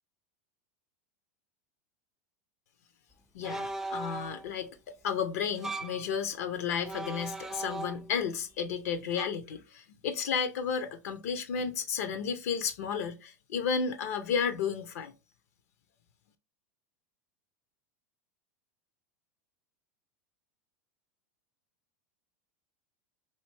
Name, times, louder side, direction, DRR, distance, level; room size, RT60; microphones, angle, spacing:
voice 1, 3.3-4.7 5.0-15.1, left 6 dB, 70° left, 0.5 m, -32 dB
sound 1, 3.4-4.5 5.5-6.0 6.8-8.2 9.1-9.3, right 2 dB, 5° right, 0.3 m, -38 dB
3.2 x 2.5 x 3.2 m
hypercardioid pair, 90°, 9 cm